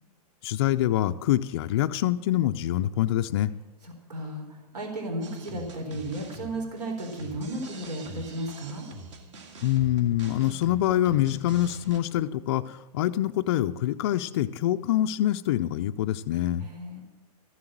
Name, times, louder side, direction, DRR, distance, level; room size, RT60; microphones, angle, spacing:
voice 1, 0.4-3.5 9.6-16.7, left 13 dB, 40° left, 6 dB, 0.4 m, -25 dB
voice 2, 3.8-8.9 16.6-17.0, right 1 dB, 80° right, 3 dB, 3.9 m, -34 dB
sound 1, 5.2-12.0, right 3 dB, 45° right, 2.0 m, -44 dB
13.5 x 7.8 x 7.5 m, 1.1 s
hypercardioid pair, 160°, 20 cm